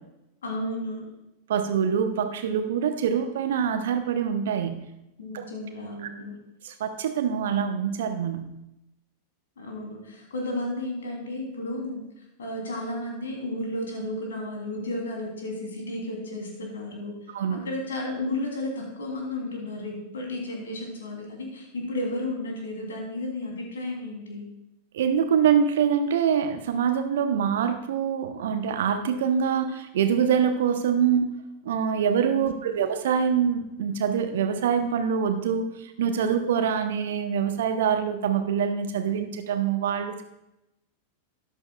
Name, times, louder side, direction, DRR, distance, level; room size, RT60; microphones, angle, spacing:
voice 1, 0.4-1.0 5.2-6.3 9.6-12.0 12.4-17.1 17.6-24.5 32.3-32.8, left 1 dB, 65° left, 0 dB, 3.2 m, -33 dB
voice 2, 1.5-4.8 5.3-5.4 6.6-8.5 17.3-17.7 24.9-31.3 31.6-40.2, right 7 dB, 60° right, 8 dB, 0.9 m, -25 dB
13.0 x 11.0 x 2.4 m, 0.89 s
figure-of-eight pair, 90°, 0 cm